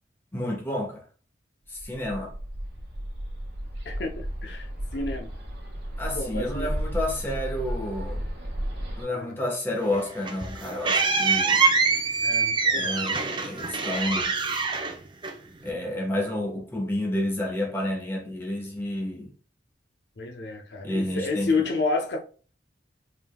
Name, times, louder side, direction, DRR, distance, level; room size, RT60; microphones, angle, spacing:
voice 1, 0.3-1.0 1.7-2.3 6.0-8.2 9.0-11.6 12.7-14.4 15.6-19.3 20.8-21.7, left 1 dB, 10° left, 1.1 m, -30 dB
Bird, 1.8-9.0, equal, 60° right, 1.3 m, -33 dB
voice 2, 3.8-5.3 6.1-6.7 9.1-9.4 12.2-13.1 20.2-22.2, left 3 dB, 60° left, 0.6 m, -30 dB
sound 1, 9.9-15.7, right 4 dB, 25° right, 0.7 m, -25 dB
4.8 x 3.5 x 2.2 m
head